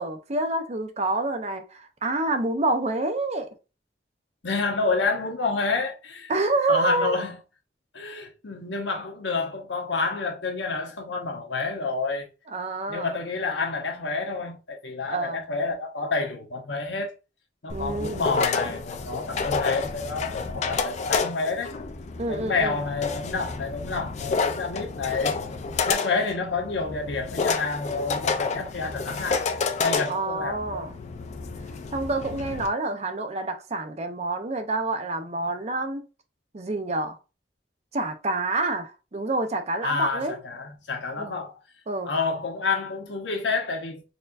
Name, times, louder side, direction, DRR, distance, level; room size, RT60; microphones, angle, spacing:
voice 1, 0.0-3.5 6.3-7.2 12.5-13.2 15.1-15.4 17.7-18.2 22.2-22.8 30.1-30.9 31.9-36.0 36.5-37.2 37.9-40.4 41.2-41.4 41.9-42.1, right 2 dB, 40° right, 0.6 m, -27 dB
voice 2, 4.4-6.3 6.7-7.3 7.9-12.3 12.9-17.1 17.6-21.7 22.3-25.4 25.9-29.4 29.8-30.9 39.8-41.5 42.0-44.0, left 4 dB, 80° left, 1.0 m, -29 dB
sound 1, 17.7-32.7, left 4 dB, 40° left, 0.4 m, -30 dB
4.2 x 2.6 x 2.4 m
head